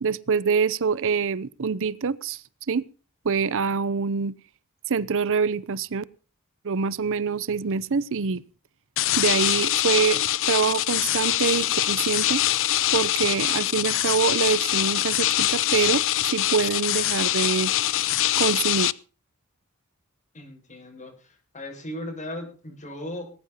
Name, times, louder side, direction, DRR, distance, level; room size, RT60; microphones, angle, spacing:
voice 1, 0.0-2.4 2.7-2.8 3.2-4.3 4.9-6.0 6.6-8.4 9.2-12.4 12.9-17.7 18.4-18.9, right 5 dB, 65° right, 19 dB, 0.6 m, -25 dB
sound 1, 9.0-18.9, left 13 dB, 65° left, 0.6 m, -24 dB
voice 2, 20.3-23.3, left 1 dB, 35° left, 1 dB, 6.7 m, -37 dB
19.5 x 9.9 x 5.6 m, 0.37 s
head